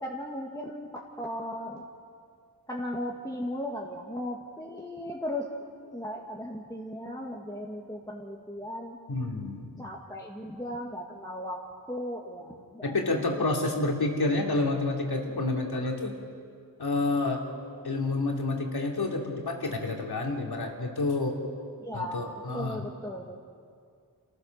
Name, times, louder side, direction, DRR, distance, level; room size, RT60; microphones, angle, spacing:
voice 1, 0.0-1.9 2.7-5.5 5.9-9.0 9.8-11.6 11.9-13.0 21.8-22.3 22.5-23.4, left 1 dB, 10° left, -2 dB, 1.8 m, -36 dB
voice 2, 9.1-9.7 12.8-16.1 16.8-17.4 17.8-21.4 21.9-22.8, left 2 dB, 80° left, 0 dB, 2.9 m, -29 dB
29.0 x 15.0 x 6.6 m, 2.3 s
wide cardioid pair, 80°, 38 cm